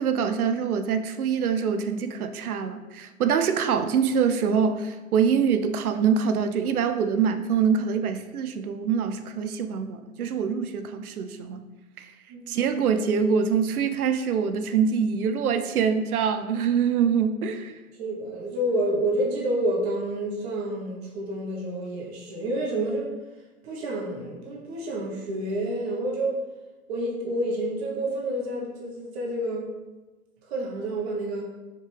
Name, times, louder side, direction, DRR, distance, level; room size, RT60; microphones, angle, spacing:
voice 1, 0.0-11.6 12.0-12.1 12.5-17.7, right 6 dB, 90° right, 9 dB, 0.6 m, -24 dB
voice 2, 12.3-12.6 18.0-23.1 23.6-26.4 26.9-29.7 30.4-31.4, right 1 dB, 45° right, -3 dB, 1.2 m, -29 dB
4.5 x 2.8 x 3.3 m, 1.2 s
hypercardioid pair, 135°, 43 cm